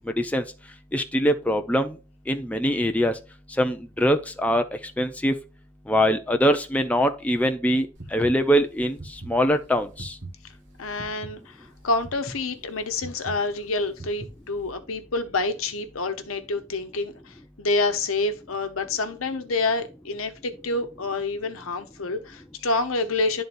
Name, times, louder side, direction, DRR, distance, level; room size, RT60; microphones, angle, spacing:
voice 1, 0.9-2.0 2.3-3.2 3.6-4.6 5.0-5.3 5.9-10.2, equal, 5° left, 0.4 m, -23 dB
sound 1, 7.9-14.7, right 2 dB, 60° right, 1.3 m, -42 dB
voice 2, 10.8-23.4, left 3 dB, 85° left, 0.9 m, -28 dB
11.0 x 3.9 x 2.5 m
head